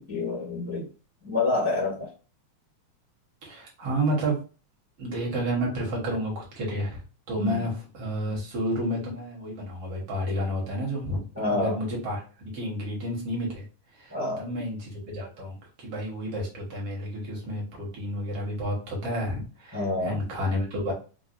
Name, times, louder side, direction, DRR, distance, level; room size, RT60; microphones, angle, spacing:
voice 1, 0.1-0.9 1.2-2.1 7.4-7.6 11.3-11.8 14.1-14.4 19.7-20.2, left 2 dB, 5° right, -6 dB, 0.7 m, -27 dB
voice 2, 3.4-4.4 5.0-7.0 7.3-12.2 12.5-13.6 13.9-20.9, equal, 60° right, -3 dB, 2.0 m, -30 dB
4.8 x 2.5 x 2.6 m, 0.35 s
omnidirectional pair, 3.4 m